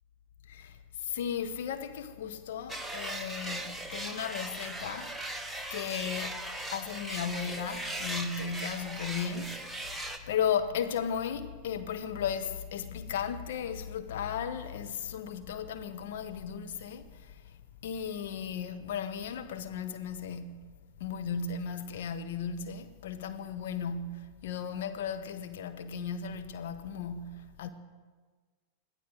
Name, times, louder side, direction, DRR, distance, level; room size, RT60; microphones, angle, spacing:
voice 1, 0.5-5.2 5.7-6.4 6.7-17.4 17.8-20.6 21.0-27.7, left 7 dB, 55° left, 1.1 m, -35 dB
sound 1, 2.7-10.2, right 1 dB, ahead, 1.1 m, -38 dB
21.5 x 14.0 x 4.1 m
figure-of-eight pair, 90°, 0 cm